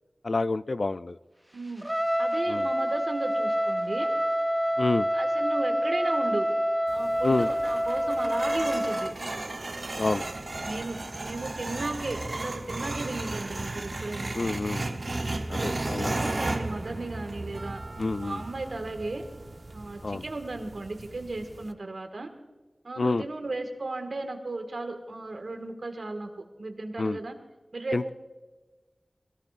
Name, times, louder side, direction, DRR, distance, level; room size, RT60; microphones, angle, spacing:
voice 1, 0.2-1.2 2.5-2.7 4.8-5.1 7.2-7.5 10.0-10.2 14.4-15.0 15.5-16.2 18.0-18.4 20.0-20.2 23.0-23.2 27.0-27.2 27.9-28.1, left 3 dB, 70° left, 14 dB, 0.4 m, -28 dB
voice 2, 1.5-1.9 2.2-4.1 5.1-6.5 6.9-9.1 10.6-14.3 15.5-17.8 18.2-19.2 19.7-22.3 22.8-26.3 26.6-27.4 27.7-28.1, right 2 dB, 80° right, 5 dB, 1.8 m, -35 dB
Trumpet, 1.8-9.2, equal, 5° right, 0.3 m, -27 dB
sound 1, 6.9-21.7, right 2 dB, 55° right, 0.9 m, -35 dB
21.5 x 17.5 x 2.5 m, 1.2 s
wide cardioid pair, 60°, 0 cm